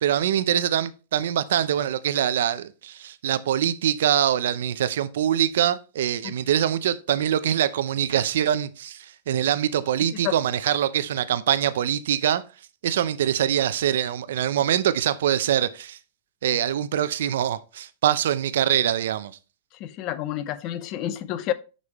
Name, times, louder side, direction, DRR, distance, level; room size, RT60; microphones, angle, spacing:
voice 1, 0.0-12.4 12.8-16.0 16.4-19.3, right 10 dB, 75° right, 0.5 m, -24 dB
voice 2, 19.7-21.5, left 12 dB, 35° left, 0.6 m, -29 dB
6.4 x 5.4 x 3.0 m
supercardioid pair, 155°, 0 cm